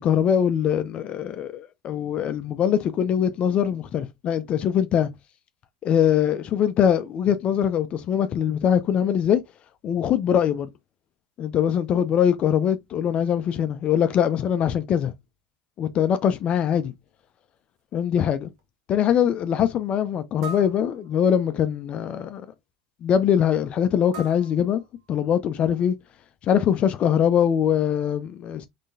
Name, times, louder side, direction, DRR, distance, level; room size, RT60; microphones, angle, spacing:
voice 1, 0.0-5.1 5.8-9.4 9.8-10.7 11.4-15.1 15.8-16.9 17.9-18.5 18.9-22.4 23.0-24.8 25.1-25.9 26.4-28.7, left 9 dB, 45° left, 0.5 m, -22 dB
sound 1, 17.1-17.2 17.8-17.9 18.5-18.6 20.4-21.6 24.1-25.4, right 3 dB, 75° right, 1.2 m, -42 dB
3.7 x 3.3 x 2.5 m
hypercardioid pair, 95°, 3 cm